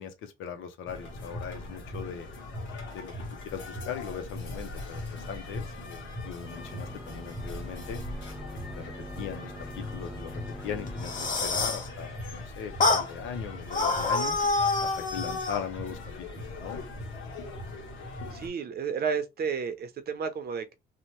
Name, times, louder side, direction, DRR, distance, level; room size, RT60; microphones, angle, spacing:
voice 1, 0.0-2.3 2.9-3.1 3.4-8.0 8.8-14.4 14.8-16.8, left 7 dB, 90° left, 0.7 m, -39 dB
sound 1, 0.8-18.5, left 2 dB, 70° left, 1.4 m, -40 dB
sound 2, 6.4-11.8, left 1 dB, ahead, 0.5 m, -44 dB
sound 3, 10.9-11.9 12.8-13.1 13.7-15.6, left 3 dB, 40° left, 0.9 m, -27 dB
voice 2, 18.3-20.7, right 6 dB, 50° right, 0.6 m, -32 dB
2.8 x 2.1 x 3.0 m
cardioid pair, 90°, 20 cm